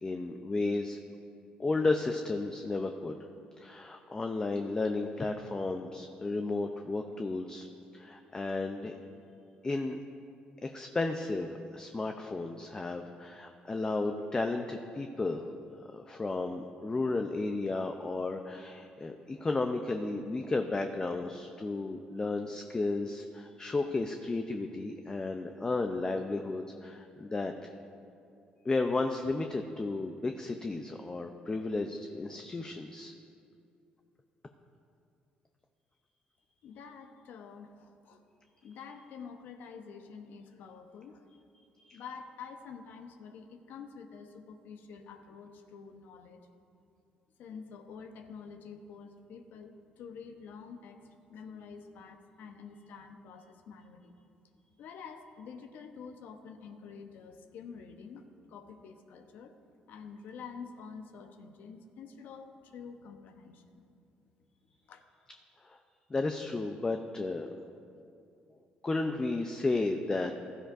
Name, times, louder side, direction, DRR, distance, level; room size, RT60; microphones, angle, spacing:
voice 1, 0.0-1.0 1.6-3.2 3.6-7.7 7.9-8.9 9.6-10.0 10.6-15.5 15.9-27.7 28.6-33.1 41.9-42.0 65.6-65.8 66.1-67.5 68.8-70.5, left 3 dB, 25° left, 5 dB, 0.6 m, -33 dB
voice 2, 36.6-38.2 38.6-41.2 41.9-46.4 47.4-51.0 51.3-54.1 54.8-59.5 59.9-63.8 64.9-65.0, left 6 dB, 75° left, 6 dB, 0.9 m, -48 dB
15.5 x 12.5 x 2.6 m, 2.5 s
cardioid pair, 85°, 3 cm